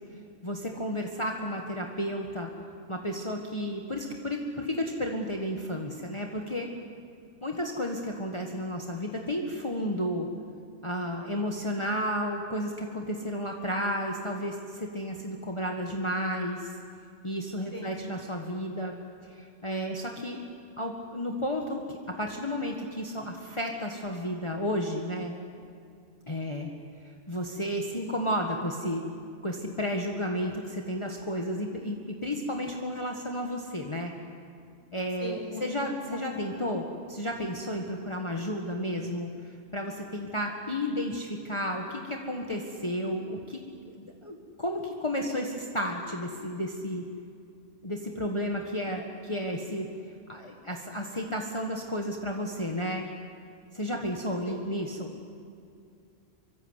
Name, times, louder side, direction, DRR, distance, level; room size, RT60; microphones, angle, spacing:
voice 1, 0.4-2.5 2.9-6.7 7.4-10.3 10.8-16.7 17.2-18.9 19.2-20.4 20.8-25.3 26.3-26.7 27.3-29.2 29.4-34.1 34.9-43.6 43.9-47.0 47.8-49.9 50.3-53.0 53.7-55.1, equal, 25° left, 1 dB, 1.6 m, -32 dB
voice 2, 35.2-36.5 54.5-54.6, left 1 dB, 25° right, 1 dB, 4.3 m, -40 dB
25.0 x 23.5 x 8.2 m, 2.4 s
omnidirectional pair, 1.3 m